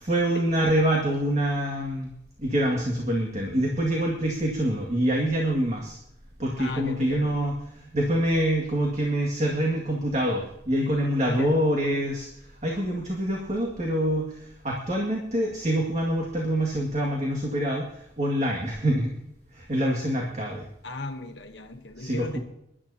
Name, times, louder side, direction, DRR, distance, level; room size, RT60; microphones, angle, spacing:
voice 1, 0.0-2.1 2.4-6.0 6.4-19.2 19.5-20.7 22.0-22.4, right 1 dB, 35° right, -1 dB, 2.0 m, -26 dB
voice 2, 6.6-7.4 11.3-11.6 20.8-22.4, left 2 dB, 75° left, 5 dB, 1.1 m, -35 dB
23.5 x 12.0 x 2.8 m, 0.79 s
head